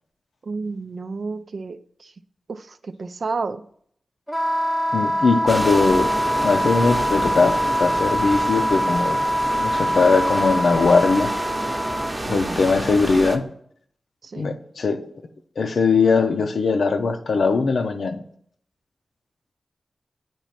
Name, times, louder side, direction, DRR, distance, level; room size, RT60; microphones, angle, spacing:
voice 1, 0.4-2.1 2.5-3.6 12.3-12.7 14.2-14.5, right 4 dB, 65° right, 0.4 m, -31 dB
Wind instrument woodwind instrument, 4.3-12.1, equal, ahead, 0.5 m, -23 dB
voice 2, 4.9-6.2 6.4-9.2 9.5-11.3 12.2-13.5 14.4-15.1 15.6-18.2, left 4 dB, 80° left, 0.6 m, -20 dB
sound 1, 5.5-13.4, right 1 dB, 25° right, 0.8 m, -29 dB
8.9 x 3.0 x 5.8 m
wide cardioid pair, 70°, 0 cm